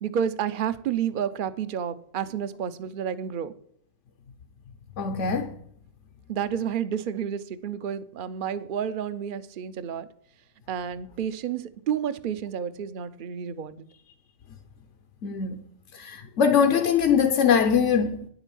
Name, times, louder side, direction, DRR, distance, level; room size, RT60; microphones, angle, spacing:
voice 1, 0.0-3.5 6.3-10.1 10.7-13.9, right 8 dB, 50° right, 0.8 m, -30 dB
voice 2, 5.0-5.5 15.2-15.7 15.9-18.3, left 7 dB, 75° left, 1.1 m, -22 dB
10.0 x 8.1 x 6.9 m
omnidirectional pair, 1.2 m